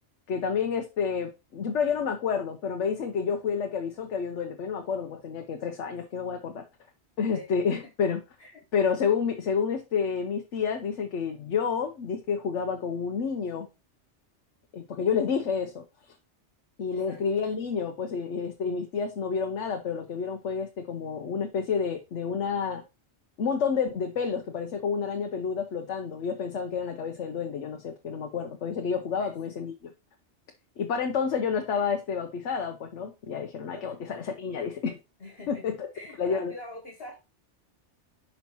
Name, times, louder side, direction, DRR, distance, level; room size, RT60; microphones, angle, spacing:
voice 1, 0.3-6.6 7.2-8.2 8.7-13.7 14.7-15.8 16.8-22.8 23.4-29.9 30.8-35.0 35.5-35.9 36.2-36.5, left 6 dB, 85° left, 4 dB, 1.2 m, -29 dB
voice 2, 35.2-35.6 35.9-37.1, left 1 dB, 55° left, 1 dB, 1.9 m, -44 dB
5.7 x 5.4 x 4.4 m, 0.27 s
omnidirectional pair, 1.2 m